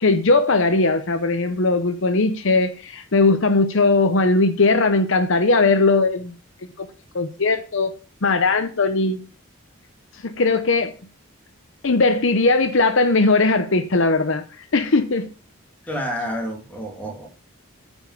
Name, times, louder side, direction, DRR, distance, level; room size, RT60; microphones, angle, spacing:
voice 1, 0.0-6.3 6.8-6.9 7.1-7.9 8.2-9.2 10.2-10.9 11.8-15.3, left 3 dB, 60° left, 0.8 m, -19 dB
voice 2, 15.9-17.3, equal, 5° left, 2.6 m, -29 dB
9.6 x 5.3 x 7.5 m
head